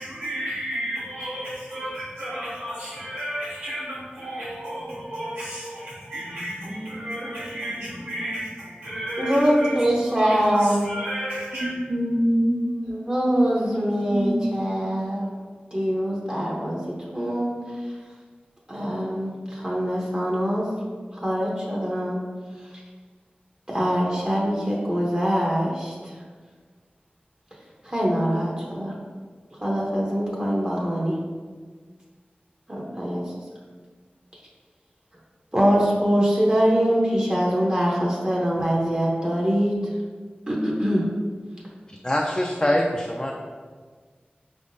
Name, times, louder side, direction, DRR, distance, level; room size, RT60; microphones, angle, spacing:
voice 1, 0.0-12.7 13.3-14.5, equal, 80° right, -14 dB, 1.5 m, -30 dB
voice 2, 9.2-10.9 12.9-15.3 15.7-17.6 18.7-20.7 21.1-22.2 23.7-26.1 27.8-29.0 29.6-31.2 32.7-33.3 35.5-39.9 40.5-41.0, equal, 30° right, -4 dB, 0.8 m, -23 dB
voice 3, 42.0-43.3, left 1 dB, 20° left, 0 dB, 0.3 m, -23 dB
4.6 x 3.5 x 2.6 m, 1.5 s
wide cardioid pair, 60°, 4 cm